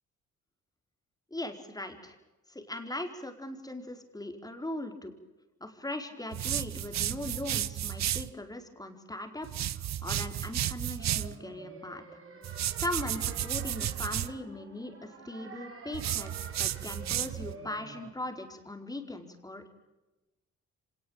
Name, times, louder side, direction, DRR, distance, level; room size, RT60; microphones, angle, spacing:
voice 1, 1.3-2.2 2.5-5.1 5.6-9.5 9.7-12.2 12.8-16.3 16.6-19.7, left 1 dB, 10° left, 5 dB, 4.6 m, -39 dB
sound 1, 6.3-8.3 9.4-11.3 12.4-14.3 15.9-17.5, right 12 dB, 65° right, 1.0 m, -33 dB
sound 2, 11.0-18.1, right 4 dB, 45° right, 5.2 m, -49 dB
25.5 x 19.0 x 9.0 m, 1.0 s
cardioid pair, 90°, 30 cm